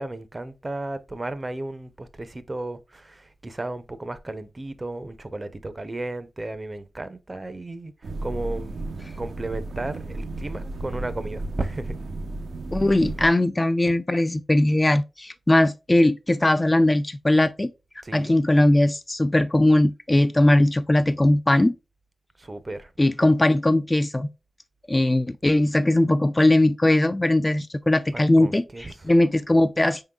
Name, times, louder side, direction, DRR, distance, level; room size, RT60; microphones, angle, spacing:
voice 1, 0.0-7.9 8.2-12.0 18.0-18.3 22.4-22.9 28.1-28.9, right 2 dB, 30° right, 0.5 m, -34 dB
sound 1, 8.0-13.3, right 2 dB, 80° right, 0.5 m, -33 dB
voice 2, 12.7-17.7 18.1-21.7 23.0-24.3 24.9-30.0, left 1 dB, 20° left, 0.3 m, -20 dB
5.1 x 3.7 x 2.3 m
wide cardioid pair, 75°, 0 cm